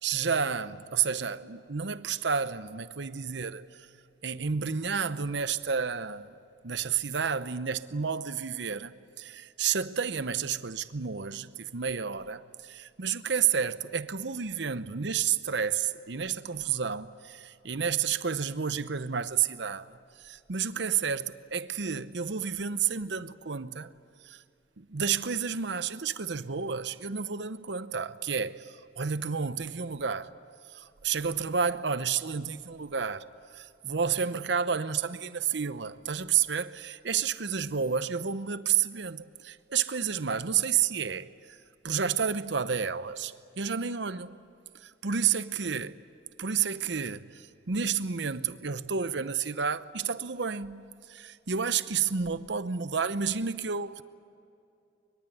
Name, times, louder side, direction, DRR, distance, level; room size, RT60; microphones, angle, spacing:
voice 1, 0.0-3.9 4.2-6.3 6.6-12.4 13.0-23.9 24.2-24.4 24.8-30.3 30.7-33.3 33.5-41.6 41.8-44.4 44.8-46.0 46.4-50.8 51.1-54.0, right 6 dB, 65° right, 0.8 m, -30 dB
23.5 x 23.0 x 9.3 m
head